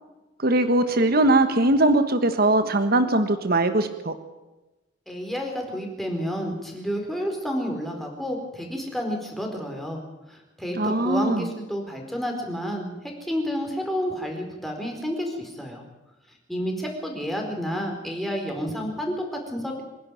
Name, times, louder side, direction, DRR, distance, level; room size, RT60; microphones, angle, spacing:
voice 1, 0.4-4.1 10.8-11.5, right 2 dB, 50° right, 9 dB, 1.5 m, -21 dB
voice 2, 5.1-10.0 10.3-15.8 16.5-19.8, equal, ahead, 1 dB, 4.4 m, -30 dB
26.0 x 11.0 x 9.2 m, 1.1 s
head